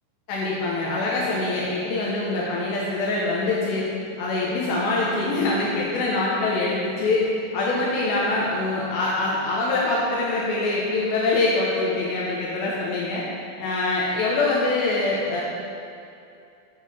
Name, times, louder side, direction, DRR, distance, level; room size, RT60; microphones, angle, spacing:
voice 1, 0.3-3.9 4.2-13.2 13.6-15.4, left 2 dB, 75° left, -5 dB, 3.0 m, -24 dB
10.0 x 7.0 x 4.2 m, 2.6 s
omnidirectional pair, 5.5 m